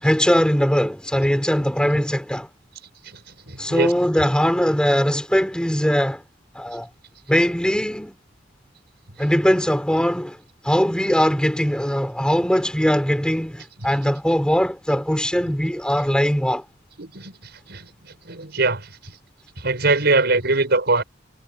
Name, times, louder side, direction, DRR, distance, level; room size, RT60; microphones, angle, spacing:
voice 1, 0.0-2.5 3.6-6.2 6.5-6.9 7.3-8.1 9.2-10.4 10.6-16.6, equal, 5° left, 3.3 m, -20 dB
voice 2, 3.5-3.9 17.0-17.3 17.7-17.8 18.3-18.9 19.6-21.0, right 3 dB, 60° right, 6.2 m, -21 dB
head